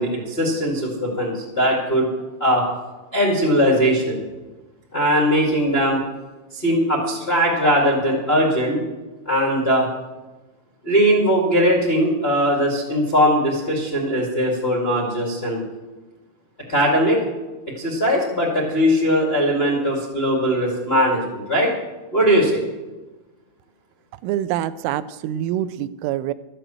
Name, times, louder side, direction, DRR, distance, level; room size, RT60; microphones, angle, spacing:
voice 1, 0.0-2.1 2.4-2.6 3.1-4.2 4.9-6.0 6.5-8.8 9.2-9.9 10.8-15.6 16.7-17.2 17.8-21.7 22.1-22.6, equal, 80° left, -2 dB, 0.5 m, -20 dB
voice 2, 24.2-26.3, right 12 dB, 90° right, 14 dB, 3.1 m, -25 dB
13.5 x 7.9 x 7.6 m, 1.2 s
omnidirectional pair, 5.5 m